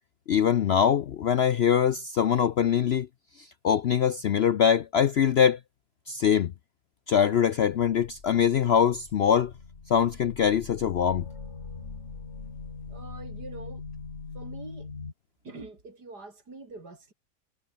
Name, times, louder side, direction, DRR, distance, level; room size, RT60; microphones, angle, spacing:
voice 1, 0.3-3.1 3.4-5.6 6.1-6.5 7.1-9.5 9.9-11.3, left 8 dB, 75° left, 0.6 m, -23 dB
sound 1, 7.7-15.1, left 4 dB, 40° left, 2.4 m, -42 dB
voice 2, 12.9-13.8 14.3-14.9 15.4-17.1, right 3 dB, 70° right, 5.1 m, -44 dB
omnidirectional pair, 1.8 m